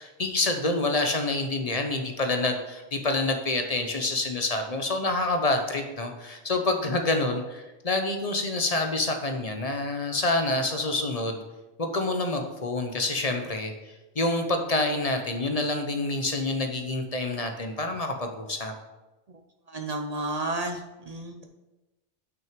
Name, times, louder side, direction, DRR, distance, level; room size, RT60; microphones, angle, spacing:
voice 1, 0.0-11.4 11.8-13.7 14.2-18.7, left 2 dB, 35° left, 5 dB, 0.8 m, -27 dB
voice 2, 19.7-21.5, right 2 dB, 40° right, 4 dB, 0.6 m, -32 dB
6.2 x 6.1 x 5.1 m, 1.1 s
omnidirectional pair, 1.2 m